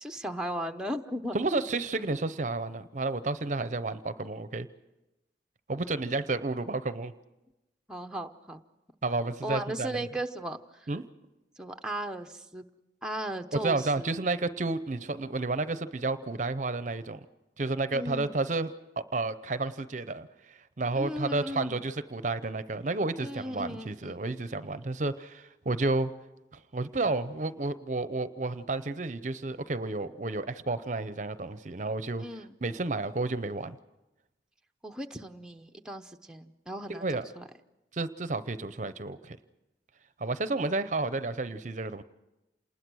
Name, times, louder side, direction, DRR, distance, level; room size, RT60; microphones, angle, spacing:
voice 1, 0.0-1.4 7.9-8.6 9.4-10.9 11.6-12.6 13.0-14.1 17.9-18.4 21.0-21.8 23.2-24.2 32.2-32.5 34.8-37.1 37.4-37.5, right 1 dB, 5° right, 6 dB, 0.7 m, -36 dB
voice 2, 1.3-4.7 5.7-7.1 9.0-10.1 10.9-11.0 13.5-17.3 17.6-26.1 26.5-33.8 36.9-37.2 37.9-39.4 40.2-42.0, right 3 dB, 40° right, 13 dB, 0.7 m, -31 dB
27.5 x 20.0 x 6.3 m, 1.0 s
head